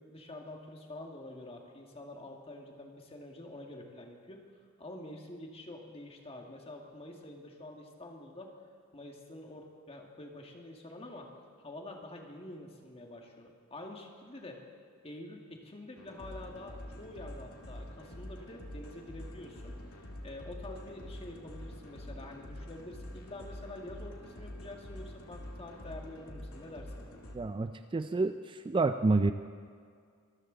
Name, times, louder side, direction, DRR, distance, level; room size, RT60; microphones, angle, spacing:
voice 1, 0.0-4.4 4.8-8.5 8.9-11.3 11.6-14.6 15.0-19.7 20.2-27.1, left 1 dB, 25° left, 1 dB, 1.9 m, -47 dB
sound 1, 16.0-27.4, left 1 dB, 85° left, 2.1 m, -46 dB
voice 2, 27.3-29.3, right 3 dB, 25° right, 9 dB, 0.4 m, -29 dB
24.5 x 13.5 x 3.9 m, 2.1 s
head